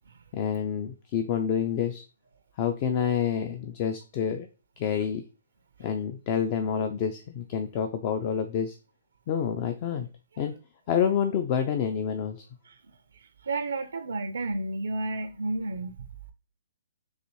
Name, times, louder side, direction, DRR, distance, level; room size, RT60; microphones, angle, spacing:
voice 1, 0.3-2.0 2.6-4.5 4.8-5.2 5.8-8.8 9.3-10.1 10.4-10.6 10.9-12.4, left 8 dB, 35° left, 0.4 m, -28 dB
voice 2, 13.1-16.0, right 2 dB, 75° right, 0.4 m, -32 dB
4.0 x 2.7 x 3.0 m
figure-of-eight pair, 130°, 0 cm